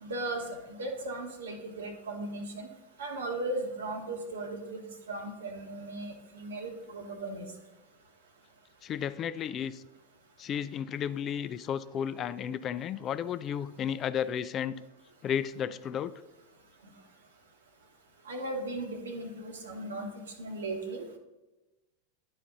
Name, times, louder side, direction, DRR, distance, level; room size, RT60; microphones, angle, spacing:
voice 1, 0.0-2.7 3.0-7.4 18.3-20.1 20.4-21.0, right 2 dB, 80° right, 4 dB, 1.2 m, -37 dB
voice 2, 8.8-9.8 10.4-14.8 15.2-16.1, left 8 dB, 35° left, 14 dB, 0.4 m, -33 dB
11.0 x 4.2 x 3.8 m, 1.1 s
hypercardioid pair, 95°, 0 cm